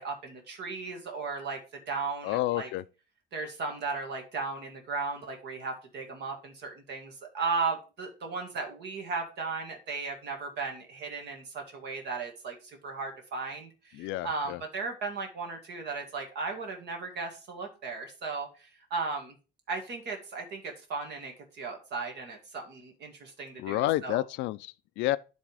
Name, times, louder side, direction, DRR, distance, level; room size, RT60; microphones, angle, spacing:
voice 1, 0.0-1.6 1.9-2.7 3.3-19.3 19.7-24.2, right 4 dB, 70° right, 1.8 m, -36 dB
voice 2, 2.2-2.8 13.9-14.6 23.6-25.2, left 16 dB, 90° left, 0.4 m, -30 dB
10.0 x 3.5 x 4.8 m
cardioid pair, 110°, 18 cm